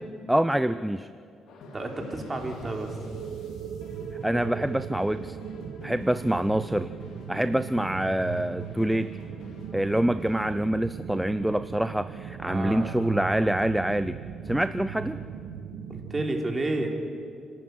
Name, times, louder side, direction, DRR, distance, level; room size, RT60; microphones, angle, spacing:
voice 1, 0.3-1.1 4.2-5.4 5.8-6.9 7.3-9.1 9.7-14.2 14.5-15.2, right 1 dB, 5° right, 13 dB, 0.5 m, -26 dB
sound 1, 1.5-10.6, left 2 dB, 80° left, 3.0 m, -48 dB
voice 2, 1.7-3.0 12.4-12.9 13.2-13.6 15.9-16.9, right 2 dB, 25° right, 2 dB, 3.7 m, -31 dB
sound 2, 2.9-16.3, right 8 dB, 80° right, 1.5 m, -38 dB
29.5 x 12.0 x 9.6 m, 2.3 s
cardioid pair, 90°, 0 cm